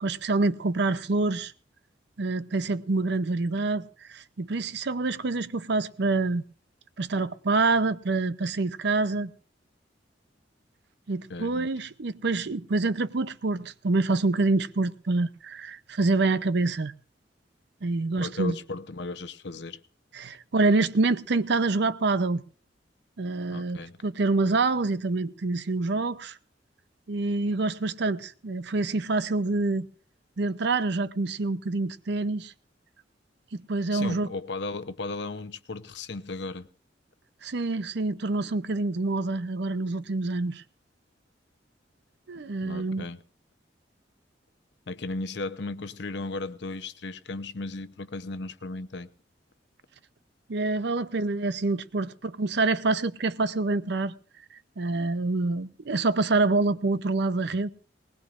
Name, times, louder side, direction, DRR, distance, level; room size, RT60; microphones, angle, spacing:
voice 1, 0.0-1.5 2.2-6.4 7.0-9.3 11.1-16.9 17.8-18.6 20.1-22.4 23.2-26.4 27.1-29.9 30.4-32.5 33.5-34.3 37.4-40.6 42.3-43.0 50.5-54.1 54.8-57.7, right 3 dB, 65° right, 0.6 m, -26 dB
voice 2, 11.3-11.7 18.2-19.8 23.5-23.9 33.9-36.7 42.6-43.2 44.9-49.1, left 3 dB, 65° left, 0.8 m, -35 dB
20.0 x 19.5 x 2.5 m
head